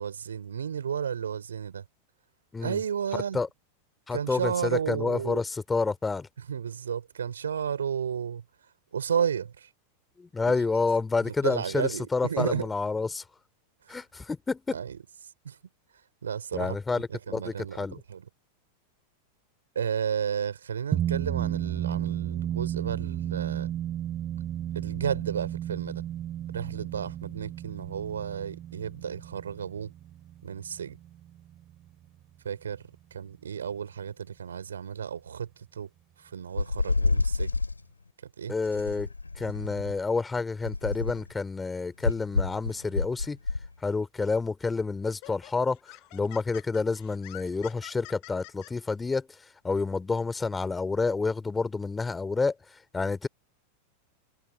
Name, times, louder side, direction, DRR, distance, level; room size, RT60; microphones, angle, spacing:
voice 1, 0.0-1.8 2.6-3.4 4.1-5.4 6.4-8.4 8.9-9.7 10.5-10.6 11.2-12.7 13.9-14.0 14.7-15.0 15.4-15.6 16.2-16.8 17.1-18.3 19.8-23.7 24.7-26.0 26.5-29.9 30.4-31.0 32.4-32.8 33.1-35.9 36.2-37.6 38.4-38.5, right 7 dB, 70° right, 3.6 m, -32 dB
voice 2, 3.1-3.5 4.1-6.3 10.2-13.2 13.9-14.8 16.5-18.0 38.5-39.1 39.4-43.4 43.8-45.8 46.1-49.3 49.6-52.5 52.9-53.3, left 4 dB, 10° left, 2.9 m, -29 dB
sound 1, 20.9-31.6, right 11 dB, 30° right, 4.6 m, -33 dB
sound 2, 36.6-37.8 38.7-40.0 40.6-41.3 42.0-43.7, left 3 dB, 80° left, 3.8 m, -28 dB
Laughter, 44.2-44.4 45.1-48.7, left 40 dB or more, 45° left, 7.8 m, -47 dB
figure-of-eight pair, 90°, 0 cm